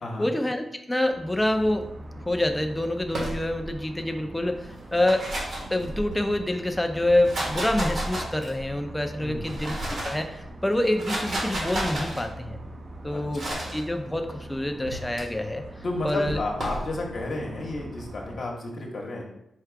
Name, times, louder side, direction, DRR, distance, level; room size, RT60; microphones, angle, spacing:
voice 1, 0.2-1.9 2.3-5.3 5.7-12.6 13.0-13.4 13.7-15.6 16.0-16.4, left 1 dB, 10° left, 5 dB, 0.4 m, -26 dB
sound 1, 1.0-18.4, right 1 dB, 40° right, 0.6 m, -42 dB
sound 2, 3.1-3.8 4.8-6.3 7.0-8.7 9.3-10.2 10.8-12.2 13.3-13.8 14.9-15.2 16.3-16.9, right 1 dB, 65° right, 1.5 m, -32 dB
voice 2, 9.2-9.6 13.1-13.6 15.8-19.2, left 2 dB, 60° left, -2 dB, 1.0 m, -32 dB
4.6 x 2.4 x 4.6 m, 0.81 s
cardioid pair, 85°, 0 cm